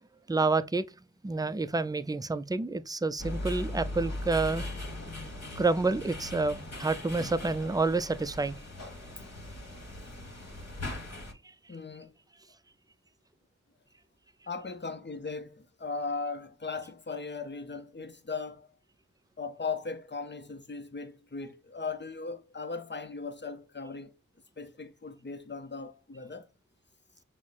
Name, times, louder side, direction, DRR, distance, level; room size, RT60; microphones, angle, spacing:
voice 1, 0.3-0.8 1.2-4.6 5.6-8.6, right 3 dB, 15° right, 0.3 m, -28 dB
sound 1, 3.2-11.3, left 1 dB, 55° left, 1.3 m, -39 dB
voice 2, 11.7-12.1 14.5-18.7 19.4-24.1 24.6-26.5, left 4 dB, 35° left, 0.7 m, -38 dB
6.1 x 2.1 x 3.9 m
wide cardioid pair, 45°, 32 cm